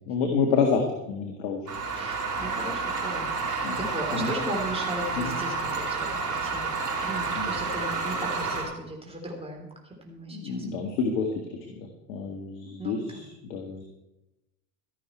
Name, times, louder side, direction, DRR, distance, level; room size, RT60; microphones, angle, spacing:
voice 1, 0.1-0.8 1.1-1.6 2.0-2.1 3.6-3.8 4.1-4.3 5.2-5.4 7.4-7.5 10.3-13.8, left 5 dB, 75° left, 3 dB, 2.0 m, -29 dB
sound 1, 1.7-8.6, right 4 dB, 35° right, 4.8 m, -30 dB
voice 2, 1.9-6.8 7.0-10.7 12.8-13.2, right 1 dB, 10° right, 0 dB, 3.6 m, -37 dB
13.0 x 11.5 x 4.5 m, 0.93 s
hypercardioid pair, 75°, 49 cm